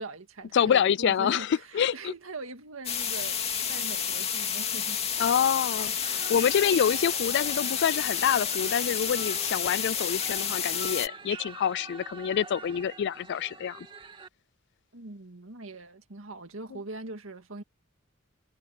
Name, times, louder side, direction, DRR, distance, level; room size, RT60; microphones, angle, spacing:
voice 1, 0.0-3.4 3.7-5.3 14.9-17.6, right 2 dB, 85° right, 2.0 m, -41 dB
voice 2, 0.5-2.1 5.2-13.9, left 8 dB, 60° left, 0.3 m, -27 dB
sound 1, 2.8-11.1, left 7 dB, 30° left, 2.5 m, -30 dB
sound 2, 6.0-14.3, right 4 dB, 25° right, 2.6 m, -45 dB
head